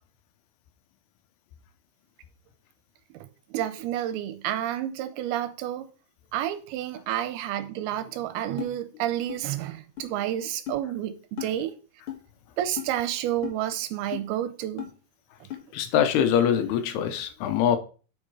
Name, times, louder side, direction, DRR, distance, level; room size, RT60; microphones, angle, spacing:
voice 1, 3.1-5.9 6.3-11.8 12.6-14.9, right 12 dB, 80° right, 2.5 m, -30 dB
sound 1, 8.6-8.7 9.3-9.4 10.0-10.1 10.7-10.8 11.4-11.5 12.1-12.2 12.8-12.9 13.4-13.6 14.1-14.3 14.8-14.9 15.5-15.6, left 12 dB, 55° left, 1.5 m, -35 dB
voice 2, 15.7-17.8, left 9 dB, 80° left, 2.8 m, -23 dB
8.5 x 5.6 x 4.7 m
omnidirectional pair, 4.7 m